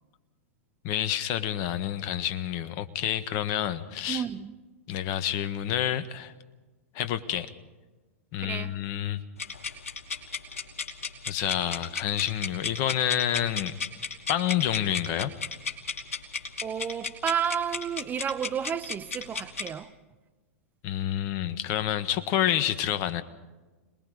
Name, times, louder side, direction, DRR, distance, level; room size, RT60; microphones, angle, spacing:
voice 1, 0.8-4.2 4.9-6.3 6.9-7.5 8.3-9.2 11.3-13.7 14.3-15.3 20.8-23.2, left 11 dB, 45° left, 1.4 m, -28 dB
voice 2, 4.1-4.5 8.4-8.7 16.6-19.9, right 8 dB, 25° right, 1.1 m, -31 dB
sound 1, 9.4-19.7, left 5 dB, 75° left, 2.6 m, -35 dB
27.0 x 20.0 x 5.1 m
hypercardioid pair, 100°, 8 cm